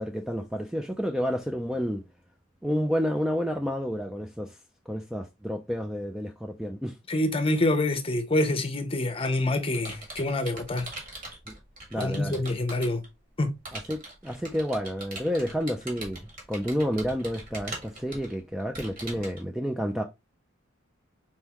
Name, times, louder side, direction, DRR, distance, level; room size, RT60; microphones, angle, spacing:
voice 1, 0.0-2.0 2.6-4.6 4.9-7.0 11.5-11.6 11.9-12.4 13.7-16.2 16.5-20.0, equal, 5° right, 0.3 m, -30 dB
voice 2, 7.1-10.9 12.0-13.0 13.4-13.5, left 2 dB, 30° left, 0.8 m, -26 dB
Computer keyboard, 9.0-13.1 13.7-19.4, right 2 dB, 45° right, 1.8 m, -41 dB
4.4 x 3.6 x 2.9 m
head